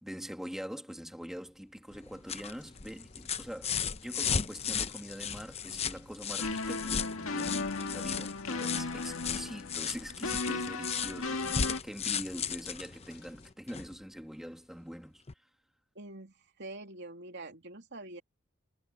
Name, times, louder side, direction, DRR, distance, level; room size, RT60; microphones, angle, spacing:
voice 1, 0.0-15.2, equal, ahead, 2.0 m, -44 dB
sound 1, 1.9-14.0 15.3-15.4, left 7 dB, 30° left, 0.7 m, -36 dB
sound 2, 2.6-13.5, left 4 dB, 60° left, 7.5 m, -60 dB
sound 3, 6.4-11.8, left 3 dB, 75° left, 1.6 m, -35 dB
voice 2, 15.9-18.2, right 2 dB, 60° right, 3.0 m, -45 dB
head